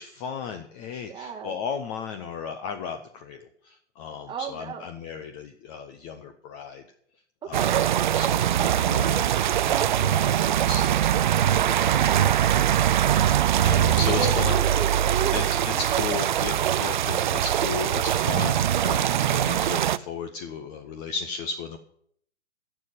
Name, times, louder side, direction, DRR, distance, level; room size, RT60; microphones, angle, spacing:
voice 1, 0.0-6.8 7.4-7.8 8.1-11.7 13.6-14.6 15.3-21.8, left 5 dB, 20° left, 7 dB, 0.6 m, -35 dB
voice 2, 1.1-1.6 4.3-4.8 7.4-7.7 11.6-13.2 14.0-16.3, right 6 dB, 15° right, 6 dB, 1.4 m, -35 dB
sound 1, 7.5-20.0, right 10 dB, 45° right, 0.4 m, -22 dB
12.0 x 6.8 x 8.5 m, 0.65 s
figure-of-eight pair, 125°, 36 cm